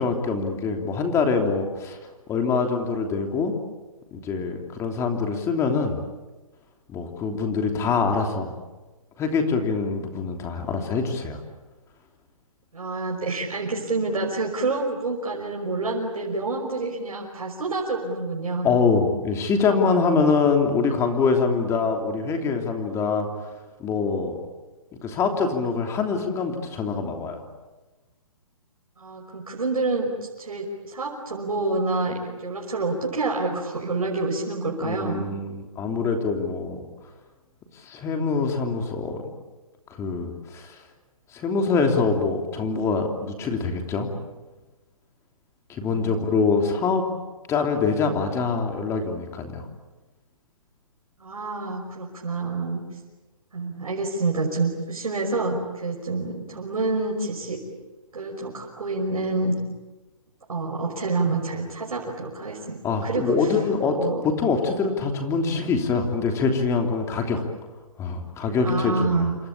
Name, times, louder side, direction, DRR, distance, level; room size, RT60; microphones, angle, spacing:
voice 1, 0.0-2.0 2.3-3.5 4.1-6.0 6.9-8.5 9.2-11.4 18.6-23.3 23.8-24.4 25.0-27.4 34.8-36.8 37.7-39.3 39.9-40.8 41.3-44.1 45.7-47.1 47.5-49.7 62.8-64.0 64.2-67.4 68.0-69.3, left 4 dB, 15° left, 4 dB, 3.1 m, -24 dB
voice 2, 12.7-18.7 29.0-30.1 30.4-35.3 45.8-46.6 51.2-52.8 53.5-57.6 58.1-59.5 60.5-63.5 63.8-64.2 68.6-69.3, right 3 dB, 90° right, 0 dB, 5.7 m, -28 dB
28.0 x 24.5 x 8.6 m, 1.2 s
hypercardioid pair, 150°, 18 cm